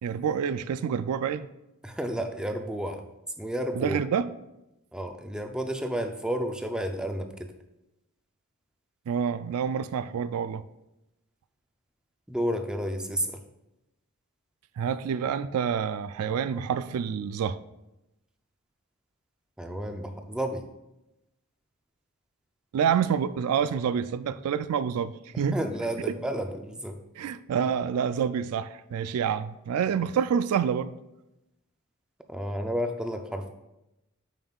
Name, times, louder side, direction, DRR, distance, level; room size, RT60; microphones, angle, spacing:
voice 1, 0.0-1.5 3.8-4.3 9.1-10.6 14.8-17.6 22.7-25.6 26.1-26.2 27.2-30.9, right 7 dB, 90° right, 0.3 m, -27 dB
voice 2, 1.8-3.0 3.4-4.0 4.9-7.5 12.3-13.4 19.6-20.7 25.3-27.0 32.3-33.5, equal, 5° right, 0.4 m, -31 dB
9.0 x 5.3 x 2.4 m
head